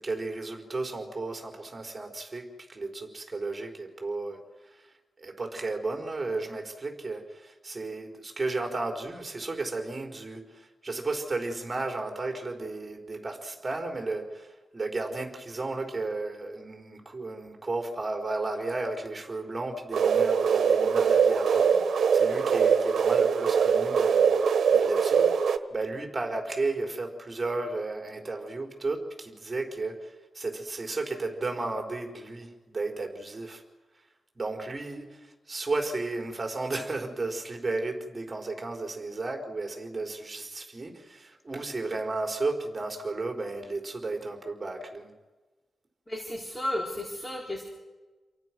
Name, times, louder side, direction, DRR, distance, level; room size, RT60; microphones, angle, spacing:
voice 1, 0.0-33.6 34.3-45.1, right 3 dB, 30° right, 3 dB, 4.8 m, -34 dB
sound 1, 19.9-25.6, right 6 dB, 75° right, 1.4 m, -22 dB
voice 2, 46.1-47.6, left 1 dB, 20° left, 1 dB, 4.4 m, -33 dB
30.0 x 23.0 x 6.3 m, 1.2 s
cardioid pair, 85°, 0 cm